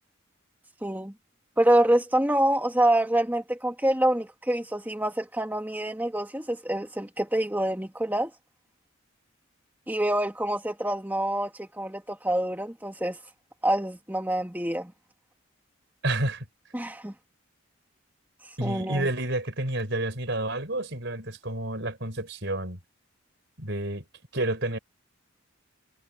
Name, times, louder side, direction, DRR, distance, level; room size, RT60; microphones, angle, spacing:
voice 1, 0.8-1.1 1.6-8.3 9.9-13.2 13.6-14.9 16.7-17.1 18.6-19.1, right 1 dB, 10° right, 1.8 m, -26 dB
voice 2, 16.0-16.5 18.6-22.8 23.6-24.0 24.3-24.8, right 1 dB, 55° right, 5.8 m, -29 dB
head